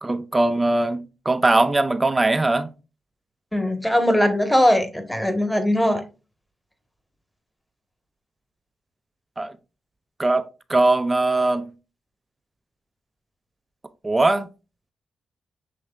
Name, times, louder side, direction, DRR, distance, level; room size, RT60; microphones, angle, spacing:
voice 1, 0.0-2.7 9.4-9.6 10.2-11.7 14.0-14.5, right 2 dB, 25° right, 0.5 m, -21 dB
voice 2, 3.5-6.0, equal, 10° left, 1.3 m, -20 dB
7.0 x 3.1 x 2.4 m
supercardioid pair, 50°, 0 cm